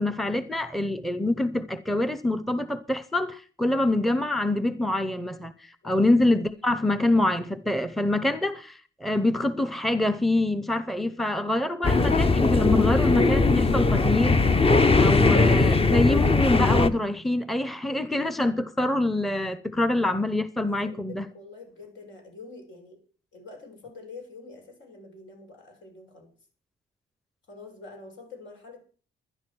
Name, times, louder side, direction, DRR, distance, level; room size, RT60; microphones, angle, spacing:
voice 1, 0.0-14.4 15.0-21.3, left 1 dB, ahead, 0.8 m, -25 dB
sound 1, 11.8-16.9, left 3 dB, 30° left, 1.0 m, -20 dB
voice 2, 20.6-23.0 23.3-26.3 27.5-28.8, left 3 dB, 70° left, 6.8 m, -46 dB
12.5 x 10.5 x 6.2 m
cardioid pair, 90°, 20 cm